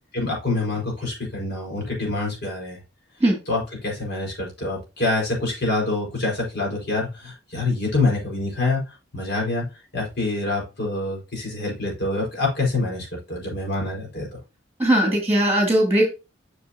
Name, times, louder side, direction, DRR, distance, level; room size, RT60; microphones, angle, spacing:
voice 1, 0.1-2.8 3.5-8.8 9.1-9.7 9.9-14.3, left 2 dB, 60° left, -2 dB, 4.6 m, -26 dB
voice 2, 14.8-16.1, right 1 dB, 10° right, 1 dB, 2.5 m, -19 dB
7.4 x 6.3 x 2.8 m, 0.28 s
head